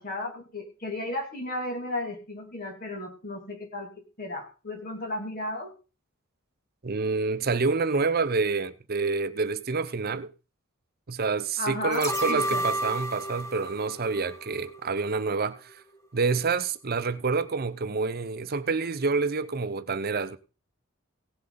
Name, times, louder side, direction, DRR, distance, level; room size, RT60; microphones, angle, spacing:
voice 1, 0.0-3.9 4.2-5.7 11.6-12.7, left 1 dB, 45° left, 2.5 m, -34 dB
voice 2, 6.8-10.3 11.1-15.8 16.1-20.4, right 4 dB, 45° right, 0.8 m, -27 dB
sound 1, 11.9-15.1 15.4-15.5, right 1 dB, 15° left, 1.9 m, -32 dB
17.0 x 7.7 x 3.9 m
head